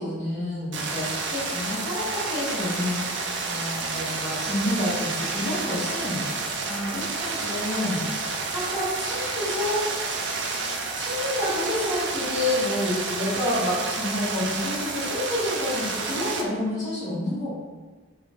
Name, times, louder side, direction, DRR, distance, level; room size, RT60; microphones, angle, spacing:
voice 1, 0.0-8.0 8.5-9.8 11.0-17.5, left 1 dB, 40° left, -11 dB, 1.2 m, -29 dB
sound 1, 0.7-16.4, right 3 dB, 60° right, 0.4 m, -30 dB
3.2 x 2.5 x 3.4 m, 1.3 s
head